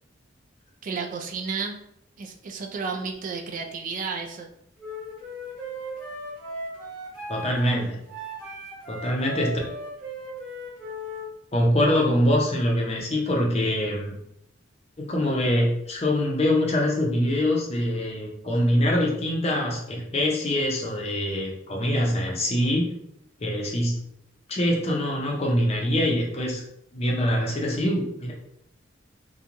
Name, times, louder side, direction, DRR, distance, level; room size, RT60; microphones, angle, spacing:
voice 1, 0.8-1.8 2.2-4.5, right 5 dB, 40° right, 2 dB, 0.3 m, -32 dB
Wind instrument woodwind instrument, 4.8-11.3, equal, 5° right, 0.9 m, -37 dB
voice 2, 7.3-8.0 8.9-9.6 11.5-14.1 15.0-22.9 23.4-24.0 24.5-26.6 26.9-28.3, left 1 dB, 30° left, -1 dB, 0.6 m, -24 dB
2.9 x 2.2 x 2.5 m, 0.75 s
head